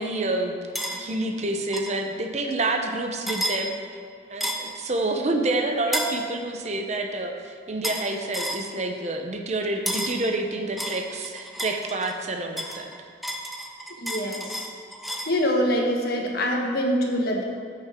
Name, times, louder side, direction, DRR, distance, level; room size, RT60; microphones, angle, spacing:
voice 1, 0.0-3.7 4.3-12.9, right 2 dB, 40° right, 4 dB, 0.8 m, -28 dB
sound 1, 0.7-1.0 1.7-2.0 3.3-3.6 4.4-4.7 5.9-6.2 7.8-8.1 8.3-8.6 9.9-10.2 10.8-12.2 12.6-15.4, equal, ahead, 0.7 m, -31 dB
voice 2, 14.0-14.7 15.3-17.4, equal, 60° left, 0 dB, 1.5 m, -24 dB
15.0 x 6.6 x 3.7 m, 2.3 s
head